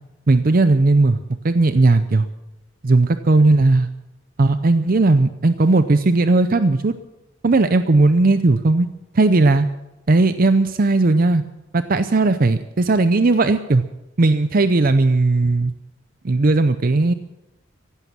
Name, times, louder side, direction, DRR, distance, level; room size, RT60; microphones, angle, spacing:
voice 1, 0.3-1.2 1.4-2.3 2.8-3.9 4.4-6.9 7.4-8.9 9.1-9.7 10.1-11.4 11.7-13.8 14.2-15.7 16.2-17.1, right 2 dB, 45° right, 11 dB, 0.6 m, -16 dB
15.5 x 11.5 x 7.2 m, 0.98 s
head